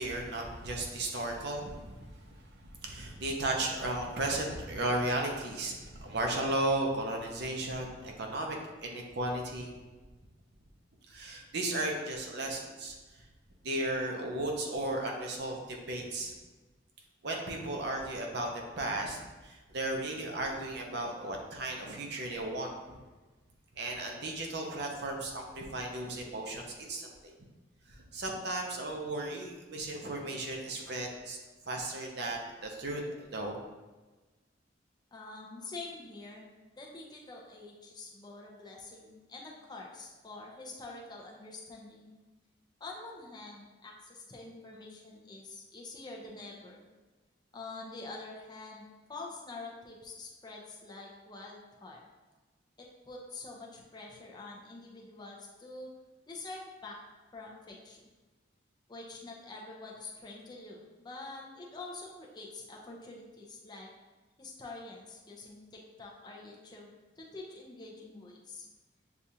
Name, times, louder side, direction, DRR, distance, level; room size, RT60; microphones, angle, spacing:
voice 1, 0.0-8.6 8.8-9.8 11.1-13.2 13.6-16.3 17.2-18.5 18.8-23.0 23.8-27.1 27.9-31.4 31.6-33.5, right 1 dB, 60° right, 1 dB, 0.7 m, -35 dB
voice 2, 35.1-36.4 36.7-42.1 42.8-46.8 47.5-52.0 52.8-55.9 56.3-57.0 57.3-58.0 58.9-63.9 64.4-68.7, left 3 dB, 25° left, -2 dB, 0.6 m, -46 dB
6.7 x 2.4 x 2.8 m, 1.2 s
head